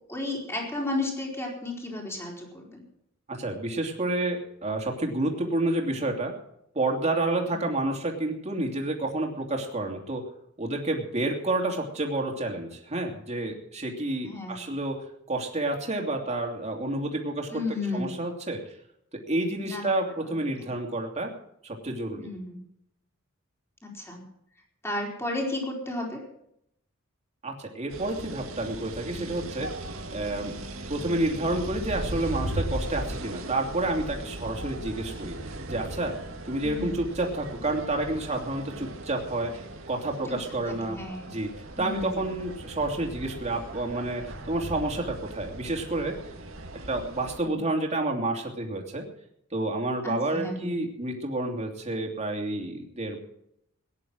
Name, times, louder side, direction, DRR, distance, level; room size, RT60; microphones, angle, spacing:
voice 1, 0.1-2.8 7.5-7.6 14.2-14.6 17.5-18.2 19.6-19.9 20.6-20.7 22.1-22.6 23.8-24.3 24.8-26.2 30.3-30.5 36.6-37.0 40.8-41.3 41.8-42.3 47.4-47.6 50.0-50.9, left 2 dB, 10° left, -1 dB, 4.4 m, -33 dB
voice 2, 3.3-6.3 6.7-10.3 10.6-15.0 15.3-17.6 17.9-18.6 19.3-21.3 21.6-22.3 27.4-29.7 30.1-30.5 30.9-35.4 35.6-36.2 36.5-39.5 39.9-41.0 41.3-41.5 41.8-46.2 46.9-49.0 49.5-53.2, right 2 dB, 35° right, 1 dB, 2.9 m, -29 dB
sound 1, 27.9-47.4, right 1 dB, 75° right, 2.1 m, -38 dB
17.5 x 10.5 x 6.3 m, 0.76 s
head